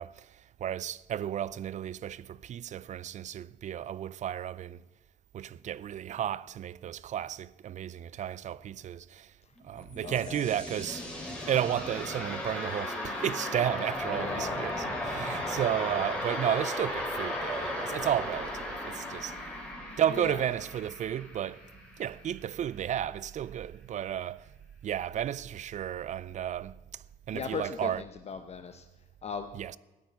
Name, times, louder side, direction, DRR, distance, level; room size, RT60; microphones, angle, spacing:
voice 1, 0.0-4.8 5.3-9.4 9.6-11.1 11.5-19.4 20.0-21.7 22.0-24.5 24.8-28.0 29.5-29.8, right 10 dB, 45° right, 0.5 m, -33 dB
sound 1, 9.6-22.4, left 1 dB, 5° left, 3.6 m, -36 dB
voice 2, 10.0-10.4 14.1-14.7 19.9-20.4 27.3-28.9 29.2-29.5, left 6 dB, 40° left, 0.9 m, -38 dB
13.5 x 9.0 x 9.6 m
cardioid pair, 110°, 17 cm